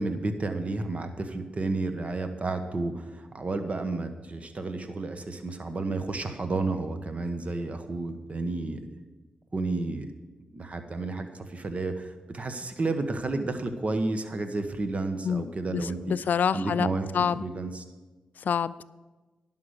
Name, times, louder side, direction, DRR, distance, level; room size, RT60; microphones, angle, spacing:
voice 1, 0.0-8.8 9.5-10.1 10.5-16.1 16.5-17.8, right 3 dB, 45° right, 7 dB, 1.2 m, -31 dB
voice 2, 15.2-16.9 17.1-17.4 18.4-18.8, left 7 dB, 65° left, 17 dB, 0.4 m, -27 dB
11.0 x 5.8 x 8.0 m, 1.2 s
supercardioid pair, 40°, 3 cm